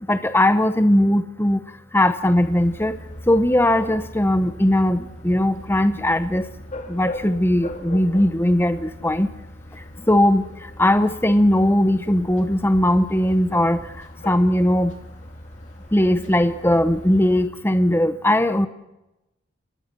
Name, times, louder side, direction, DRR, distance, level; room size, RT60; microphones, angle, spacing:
voice 1, 0.1-1.6 1.9-2.9 3.3-6.4 6.9-9.3 10.1-10.4 10.8-13.8 14.3-14.9 15.9-18.7, left 1 dB, 10° left, 10 dB, 0.9 m, -19 dB
sound 1, 2.2-17.5, left 1 dB, 35° left, 2.5 m, -40 dB
26.5 x 20.5 x 6.1 m, 0.95 s
head